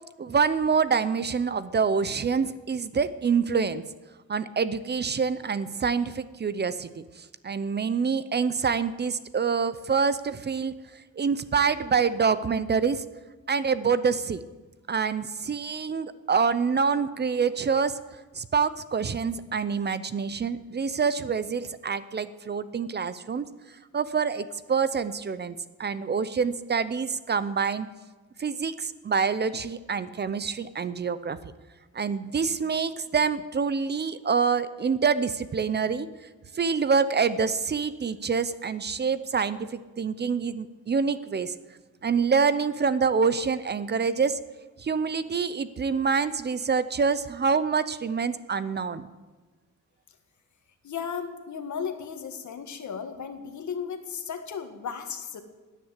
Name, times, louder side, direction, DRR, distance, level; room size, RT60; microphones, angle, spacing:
voice 1, 0.2-3.8 4.3-10.8 11.2-13.0 13.5-14.4 14.9-18.0 18.3-23.5 23.9-27.9 28.4-31.4 31.9-36.1 36.5-41.5 42.0-44.4 44.8-49.1, right 5 dB, 35° right, 15 dB, 0.6 m, -26 dB
voice 2, 50.8-55.4, left 7 dB, 75° left, 7 dB, 1.7 m, -35 dB
17.0 x 10.0 x 8.2 m, 1.3 s
wide cardioid pair, 175°, 30 cm